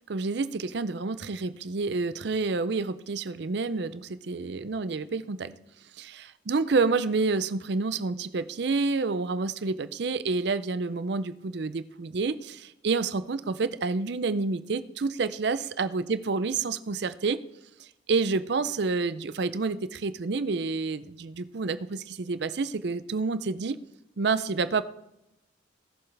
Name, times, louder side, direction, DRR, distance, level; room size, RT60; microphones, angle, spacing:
voice 1, 0.1-5.5 6.0-17.4 17.8-23.8 24.2-24.8, right 4 dB, 60° right, 14 dB, 0.5 m, -29 dB
18.0 x 7.0 x 3.3 m, 0.84 s
head